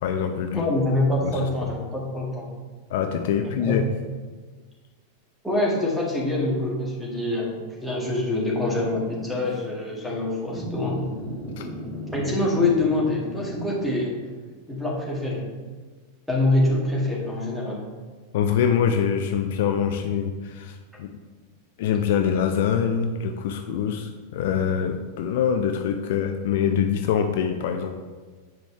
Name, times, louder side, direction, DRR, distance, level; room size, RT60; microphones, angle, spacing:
voice 1, 0.0-0.7 1.2-1.7 2.9-3.8 11.6-11.7 18.3-21.1 21.8-27.9, left 8 dB, 55° left, 6 dB, 0.4 m, -24 dB
voice 2, 0.5-2.5 3.4-3.8 5.4-11.1 12.1-14.1 14.7-15.4 16.3-17.8, left 2 dB, ahead, -5 dB, 1.8 m, -25 dB
Angry cat, 8.7-9.6 10.5-14.0, equal, 20° left, 1.9 m, -36 dB
8.0 x 5.0 x 3.3 m, 1.4 s
figure-of-eight pair, 90°, 0 cm